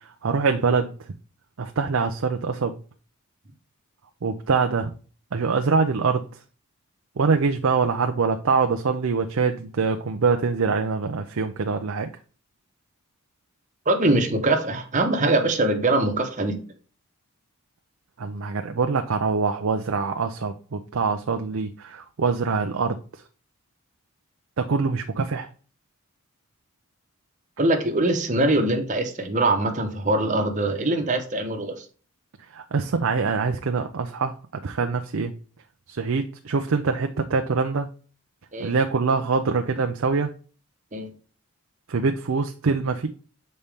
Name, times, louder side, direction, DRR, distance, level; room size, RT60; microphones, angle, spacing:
voice 1, 0.2-0.9 1.6-2.8 4.2-4.9 5.3-6.2 7.2-12.1 18.2-23.0 24.6-25.5 32.5-34.3 34.6-35.3 35.9-37.9 38.6-40.3 41.9-43.1, right 4 dB, 70° right, 6 dB, 0.5 m, -24 dB
voice 2, 13.9-16.6 27.6-31.8 38.5-38.7 40.9-41.1, right 2 dB, 35° right, 4 dB, 1.0 m, -22 dB
6.7 x 4.3 x 3.5 m, 0.39 s
head